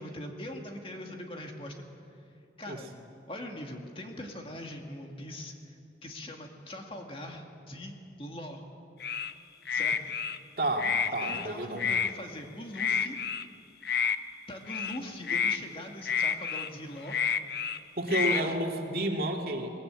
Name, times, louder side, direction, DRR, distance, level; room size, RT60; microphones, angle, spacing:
voice 1, 0.0-2.2 2.6-2.9 3.3-8.7 9.7-10.0 11.2-13.2 14.5-17.2 18.1-18.6, left 1 dB, 30° left, 2 dB, 2.0 m, -42 dB
sound 1, 9.0-9.3 9.7-10.4 10.8-11.5 11.8-12.1 12.7-13.4 13.8-14.2 14.7-15.0 15.2-15.6 16.1-16.7 17.1-17.8 18.1-18.4, left 6 dB, 65° left, 0.8 m, -29 dB
voice 2, 10.6-12.0 18.0-19.7, right 1 dB, 55° right, 1 dB, 2.6 m, -31 dB
21.0 x 21.0 x 9.0 m, 2.5 s
head